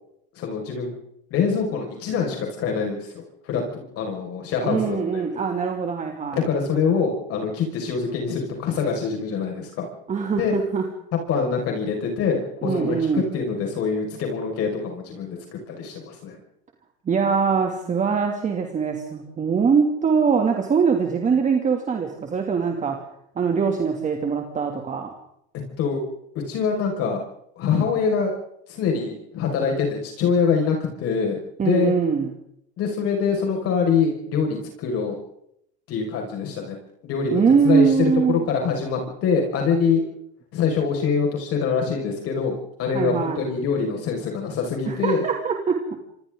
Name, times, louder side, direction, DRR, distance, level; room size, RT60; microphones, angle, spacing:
voice 1, 0.4-0.9 1.3-5.2 6.5-9.9 10.4-10.5 11.3-16.4 25.8-26.0 26.5-27.2 27.6-28.3 28.7-31.9 32.8-35.1 35.9-36.8 37.0-40.0 40.5-45.2, left 5 dB, 45° left, 2 dB, 5.8 m, -24 dB
voice 2, 4.6-6.5 10.1-10.8 12.6-13.2 17.1-23.0 23.4-25.1 31.6-32.3 37.3-38.4 42.9-43.4 44.9-46.0, right 6 dB, 20° right, 2 dB, 2.8 m, -22 dB
29.5 x 26.5 x 3.9 m, 0.75 s
supercardioid pair, 135°, 33 cm